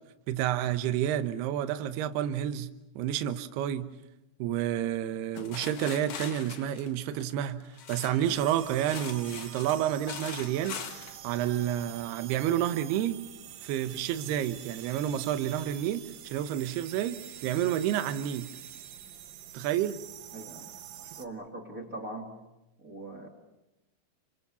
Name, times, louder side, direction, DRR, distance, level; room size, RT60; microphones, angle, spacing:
voice 1, 0.3-2.7 3.0-3.9 4.4-7.6 7.9-13.2 13.6-18.5 19.5-20.0, right 11 dB, 70° right, 2.8 m, -30 dB
sound 1, 5.3-8.3 8.8-11.2, left 7 dB, 65° left, 1.7 m, -41 dB
sound 2, 8.2-21.3, right 11 dB, 90° right, 4.0 m, -46 dB
voice 2, 20.3-20.6 20.9-22.3 22.8-23.3, right 2 dB, 25° right, 2.1 m, -41 dB
28.5 x 26.0 x 7.1 m
omnidirectional pair, 5.4 m